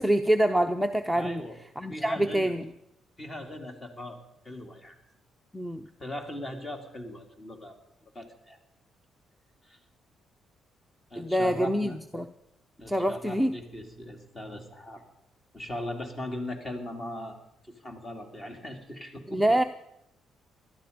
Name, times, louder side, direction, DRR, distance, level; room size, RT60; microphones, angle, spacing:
voice 1, 0.0-1.4 1.8-2.7 5.5-5.9 11.2-12.3 12.9-13.5 19.3-19.6, right 1 dB, ahead, 9 dB, 0.7 m, -26 dB
voice 2, 1.1-1.6 1.9-2.5 3.2-4.2 4.4-5.0 6.0-7.8 8.1-8.6 9.7-9.8 11.1-12.0 12.8-15.0 15.5-17.4 17.7-19.4, left 1 dB, 30° left, 5 dB, 2.6 m, -39 dB
17.0 x 12.5 x 5.2 m, 0.79 s
cardioid pair, 90°, 0 cm